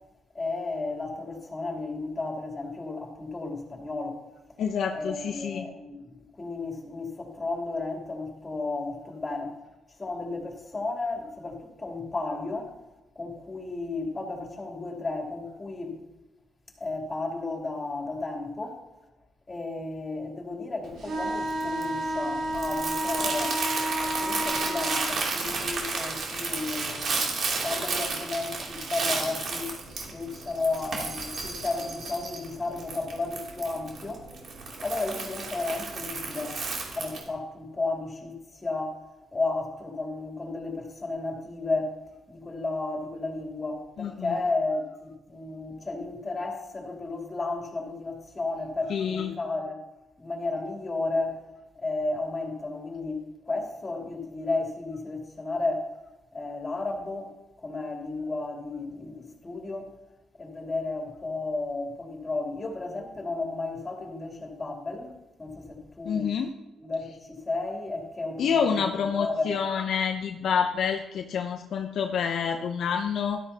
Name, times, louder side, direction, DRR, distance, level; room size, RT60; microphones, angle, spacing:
voice 1, 0.3-4.2 4.9-9.5 9.9-12.7 13.1-16.0 16.8-18.8 19.5-23.6 24.0-29.8 30.1-34.3 34.8-36.6 36.9-39.0 39.3-42.0 42.3-49.8 50.2-51.4 51.7-55.9 56.3-57.3 57.6-59.9 60.4-65.1 65.4-66.3 66.8-69.5, left 3 dB, 25° left, 0 dB, 3.3 m, -33 dB
voice 2, 4.6-5.7 44.0-44.3 48.9-49.3 66.0-66.5 68.4-73.4, left 7 dB, 65° left, 5 dB, 0.8 m, -28 dB
Crumpling crinkling, 20.8-37.3, right 4 dB, 60° right, 3.0 m, -33 dB
sound 1, 21.0-25.1, right 1 dB, 80° right, 4.2 m, -30 dB
13.0 x 13.0 x 2.9 m, 0.99 s
cardioid pair, 90°, 0 cm